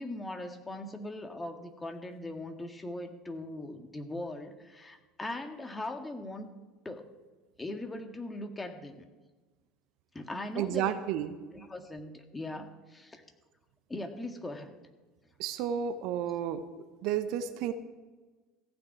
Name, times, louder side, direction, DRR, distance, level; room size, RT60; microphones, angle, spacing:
voice 1, 0.0-6.5 6.9-7.1 7.6-9.1 10.1-11.0 11.5-13.2 13.9-14.8, left 2 dB, 15° left, 5 dB, 1.7 m, -40 dB
voice 2, 10.6-11.3 15.4-16.6 17.0-17.7, right 9 dB, 60° right, 11 dB, 0.9 m, -31 dB
15.0 x 6.2 x 8.7 m, 1.3 s
figure-of-eight pair, 70°, 0 cm